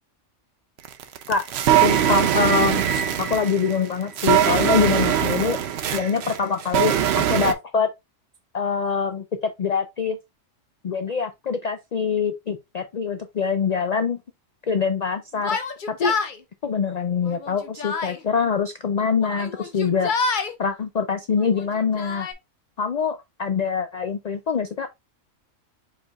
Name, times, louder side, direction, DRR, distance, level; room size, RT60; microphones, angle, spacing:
sound 1, 0.8-7.5, right 10 dB, 60° right, 0.8 m, -21 dB
voice 1, 1.8-5.6 5.9-7.9 8.5-10.2 10.8-14.2 14.7-15.6 15.9-16.1 16.6-20.1 20.6-22.3 22.8-24.9, left 6 dB, 85° left, 0.3 m, -24 dB
Yell, 15.4-16.4 17.2-18.2 19.2-20.5 21.4-22.3, left 4 dB, 50° left, 0.7 m, -27 dB
4.8 x 4.5 x 2.3 m
omnidirectional pair, 1.3 m